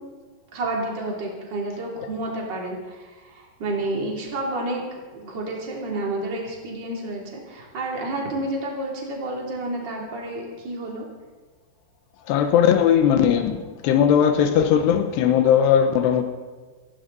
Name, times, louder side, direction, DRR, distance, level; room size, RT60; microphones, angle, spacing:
voice 1, 0.5-4.8 5.1-11.0, right 2 dB, 30° right, 3.2 m, -30 dB
voice 2, 12.3-16.2, left 8 dB, 85° left, 3.1 m, -18 dB
27.5 x 12.0 x 4.1 m
omnidirectional pair, 4.8 m